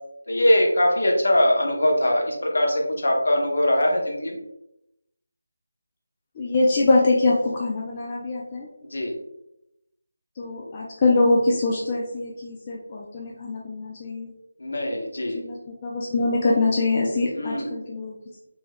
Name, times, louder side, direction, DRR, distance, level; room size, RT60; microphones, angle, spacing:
voice 1, 0.3-4.4 8.9-9.2 14.6-15.4 17.3-17.7, left 1 dB, 70° left, 0 dB, 0.8 m, -22 dB
voice 2, 6.4-8.7 10.4-14.3 15.3-15.6 15.8-18.1, left 2 dB, 20° left, -3 dB, 0.3 m, -23 dB
3.1 x 2.8 x 2.2 m, 0.83 s
figure-of-eight pair, 175°, 0 cm